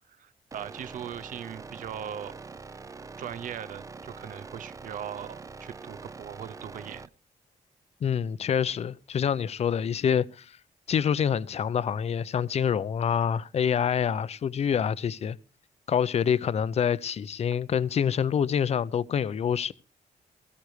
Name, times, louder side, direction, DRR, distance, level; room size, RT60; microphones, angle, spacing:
voice 1, 0.2-2.3 3.2-7.1, right 9 dB, 70° right, 0.6 m, -39 dB
sound 1, 0.5-7.1, right 4 dB, 25° right, 0.6 m, -44 dB
voice 2, 8.0-10.5 10.9-15.4 15.9-19.7, left 8 dB, 50° left, 0.6 m, -26 dB
16.5 x 14.5 x 3.2 m
wide cardioid pair, 150°, 14 cm